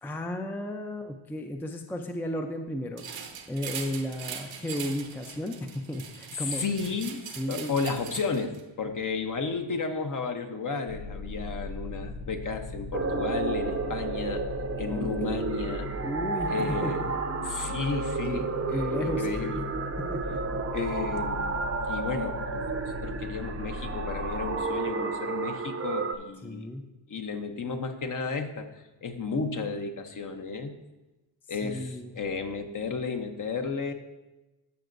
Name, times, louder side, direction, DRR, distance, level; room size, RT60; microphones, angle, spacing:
voice 1, 0.0-6.6 7.3-7.7 14.9-15.4 16.0-17.1 18.2-19.3 20.1-20.6 26.4-26.8 31.5-32.1, left 1 dB, 5° left, 4 dB, 0.5 m, -34 dB
sound 1, 3.0-8.6, right 7 dB, 75° right, 1.1 m, -41 dB
voice 2, 6.4-14.4 14.8-15.9 16.5-17.0 17.4-19.6 20.7-21.6 21.9-22.7 23.0-26.7 27.1-30.8 31.5-33.9, left 4 dB, 40° left, 6 dB, 0.9 m, -33 dB
sound 2, 10.9-24.6, left 3 dB, 85° left, 1.2 m, -38 dB
sound 3, 12.9-26.1, right 4 dB, 30° right, 0.7 m, -32 dB
14.0 x 5.8 x 2.6 m, 1.1 s
cardioid pair, 90°, 46 cm